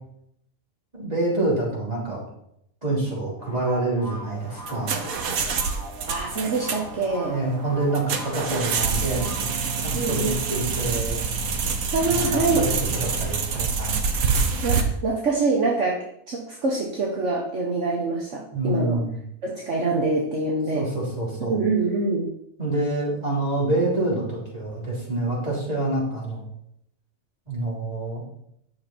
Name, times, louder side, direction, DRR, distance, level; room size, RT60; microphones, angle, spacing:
voice 1, 0.9-2.2 2.8-5.0 7.3-11.2 12.0-14.0 18.5-19.2 20.7-21.6 22.6-26.4 27.5-28.2, right 2 dB, 30° right, -5 dB, 3.4 m, -27 dB
sound 1, 3.4-9.4, equal, 20° left, 1.8 m, -40 dB
sound 2, 4.4-14.8, right 5 dB, 85° right, 1.4 m, -26 dB
voice 2, 6.1-7.4 9.9-10.3 11.9-12.7 14.6-19.0 19.4-20.9 21.5-22.3, right 3 dB, 60° right, -1 dB, 1.5 m, -25 dB
10.0 x 6.4 x 4.4 m, 0.74 s
omnidirectional pair, 1.4 m